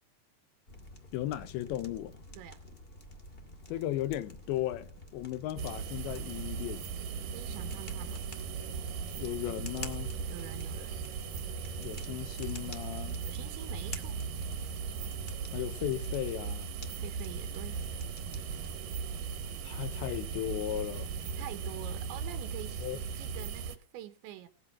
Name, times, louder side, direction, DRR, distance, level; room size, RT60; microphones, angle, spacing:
sound 1, 0.7-18.7, left 1 dB, 30° left, 1.0 m, -50 dB
voice 1, 1.1-2.1 3.7-7.1 9.1-10.1 11.8-13.2 15.5-16.7 19.6-21.1 22.8-23.0, left 13 dB, 80° left, 3.1 m, -36 dB
sound 2, 5.6-23.8, right 6 dB, 65° right, 2.7 m, -38 dB
voice 2, 7.3-8.2 10.3-11.1 13.2-14.2 17.0-17.9 21.4-24.5, right 12 dB, 85° right, 3.6 m, -46 dB
18.5 x 12.0 x 5.8 m
omnidirectional pair, 5.2 m